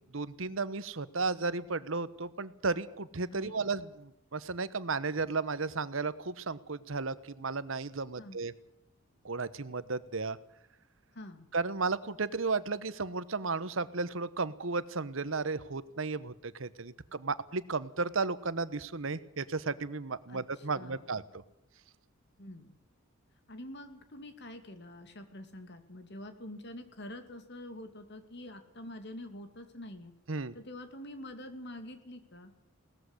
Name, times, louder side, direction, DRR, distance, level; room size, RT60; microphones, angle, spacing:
voice 1, 0.1-8.5 9.2-10.4 11.5-21.4 30.3-30.6, right 4 dB, 70° right, 15 dB, 1.1 m, -34 dB
voice 2, 3.3-3.7 8.2-8.4 11.1-11.5 20.3-21.2 22.4-22.8 23.5-30.1 30.5-32.5, left 1 dB, 55° left, 8 dB, 2.7 m, -46 dB
18.5 x 14.5 x 9.8 m, 0.83 s
head